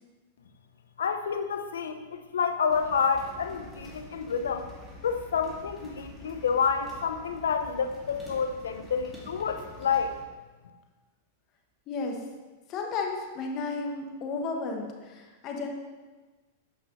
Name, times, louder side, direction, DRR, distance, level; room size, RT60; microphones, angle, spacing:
voice 1, 1.0-4.7 5.0-10.1, left 6 dB, 90° left, 8 dB, 0.7 m, -29 dB
sound 1, 2.7-10.2, left 1 dB, 5° right, 2.3 m, -47 dB
voice 2, 11.9-12.2 12.7-15.7, left 4 dB, 40° left, 2 dB, 1.4 m, -33 dB
8.5 x 5.6 x 4.1 m, 1.3 s
hypercardioid pair, 125°, 0 cm